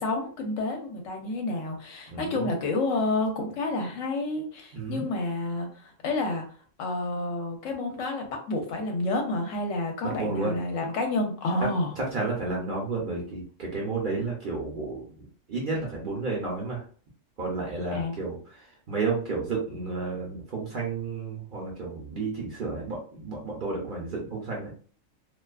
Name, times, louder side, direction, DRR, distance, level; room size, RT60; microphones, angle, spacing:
voice 1, 0.0-6.4 6.8-11.9 17.9-18.2, left 2 dB, 75° left, 3 dB, 1.0 m, -29 dB
voice 2, 2.1-2.5 4.7-5.1 10.0-10.6 12.0-16.8 17.4-24.7, right 3 dB, 50° right, -3 dB, 0.7 m, -32 dB
2.4 x 2.4 x 2.3 m, 0.43 s
omnidirectional pair, 1.3 m